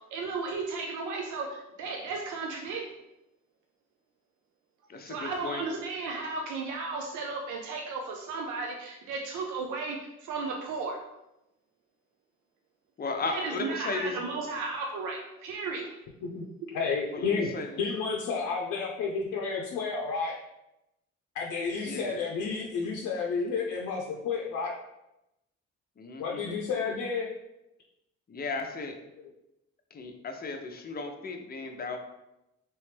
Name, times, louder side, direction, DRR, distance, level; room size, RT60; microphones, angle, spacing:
voice 1, 0.1-2.8 5.0-11.0 13.3-16.0, right 4 dB, 80° right, 1 dB, 0.6 m, -34 dB
voice 2, 4.9-5.6 13.0-14.2 17.1-17.7 21.8-22.2 26.0-26.4 28.3-29.0 29.9-32.0, left 3 dB, 30° left, 4 dB, 0.6 m, -35 dB
voice 3, 16.7-17.5 17.8-20.3 21.3-24.7 26.2-27.3 29.2-29.3 31.6-31.7, left 5 dB, 90° left, -1 dB, 0.6 m, -31 dB
3.2 x 3.0 x 3.3 m, 0.90 s
cardioid pair, 90°, 30 cm